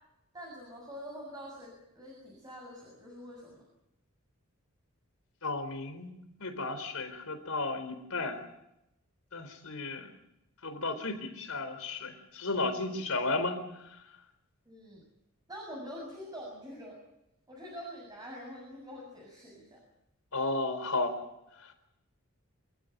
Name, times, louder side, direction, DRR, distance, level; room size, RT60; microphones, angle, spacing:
voice 1, 0.3-3.6 14.7-15.0 15.5-17.0 17.5-19.8, equal, 20° right, -1 dB, 7.3 m, -45 dB
voice 2, 5.4-6.1 6.4-8.4 9.3-10.1 10.6-13.6 20.3-21.2 21.6-21.7, left 2 dB, 80° left, 8 dB, 4.1 m, -33 dB
27.0 x 15.0 x 9.3 m, 0.86 s
head